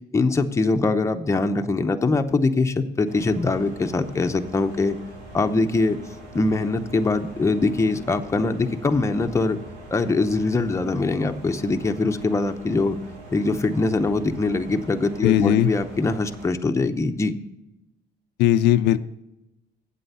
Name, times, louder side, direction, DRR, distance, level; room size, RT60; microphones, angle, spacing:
voice 1, 0.1-5.0 5.3-6.0 6.3-9.6 9.9-13.0 13.3-17.3, left 3 dB, 15° left, 6 dB, 0.7 m, -22 dB
sound 1, 3.1-16.5, right 2 dB, 90° right, 3.1 m, -43 dB
voice 2, 15.2-15.7 18.4-19.0, left 13 dB, 85° left, 11 dB, 0.5 m, -18 dB
8.3 x 7.7 x 5.6 m, 0.91 s
cardioid pair, 110°, 17 cm